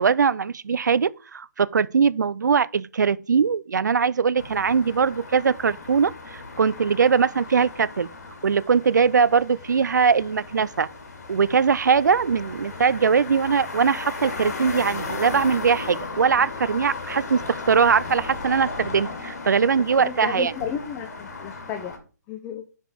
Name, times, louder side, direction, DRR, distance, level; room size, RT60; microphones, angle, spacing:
voice 1, 0.0-8.1 8.4-10.9 11.3-20.5, right 6 dB, 90° right, 0.4 m, -21 dB
sound 1, 4.4-22.0, left 3 dB, 65° left, 2.4 m, -36 dB
voice 2, 20.0-21.9 22.3-22.6, left 8 dB, 20° left, 0.6 m, -32 dB
6.1 x 5.1 x 4.8 m
hypercardioid pair, 150°, 9 cm